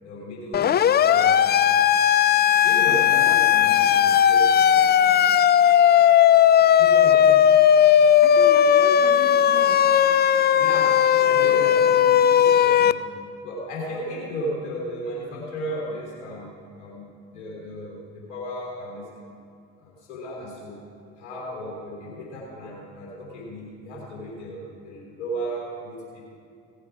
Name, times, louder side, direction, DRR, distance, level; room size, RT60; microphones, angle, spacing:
voice 1, 0.0-1.9 2.6-3.9 4.2-4.5 6.8-7.4 10.6-13.1 13.4-17.1 17.3-19.2 19.8-20.8 21.2-26.4, equal, 75° left, -4 dB, 3.3 m, -35 dB
Siren, 0.5-12.9, left 9 dB, 30° left, 0.3 m, -17 dB
voice 2, 2.9-4.2 8.2-9.8, left 8 dB, 45° left, 7 dB, 0.7 m, -36 dB
16.5 x 8.0 x 4.8 m, 2.4 s
hypercardioid pair, 50°, 38 cm